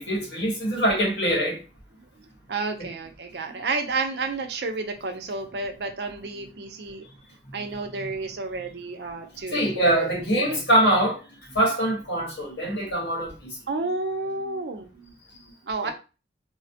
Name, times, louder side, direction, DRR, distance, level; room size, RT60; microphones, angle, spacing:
voice 1, 0.0-1.6 2.8-2.9 8.0-8.1 9.5-11.2 11.5-13.5, right 1 dB, 85° left, 1.5 m, -23 dB
voice 2, 2.5-7.0 7.5-10.1 10.5-10.6 13.7-15.9, right 3 dB, 70° right, 0.5 m, -31 dB
3.1 x 2.1 x 2.7 m
head